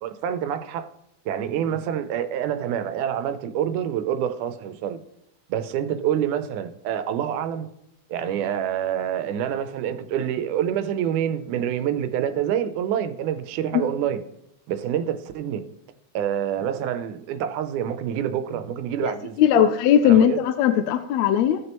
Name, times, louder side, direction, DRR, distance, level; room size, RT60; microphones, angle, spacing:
voice 1, 0.0-0.9 1.3-5.0 5.5-7.7 8.1-14.2 14.7-15.6 16.1-19.7 20.0-20.4, right 9 dB, 90° right, 2.2 m, -27 dB
voice 2, 19.0-21.6, left 10 dB, 80° left, 1.7 m, -19 dB
16.5 x 6.5 x 3.0 m
omnidirectional pair, 3.4 m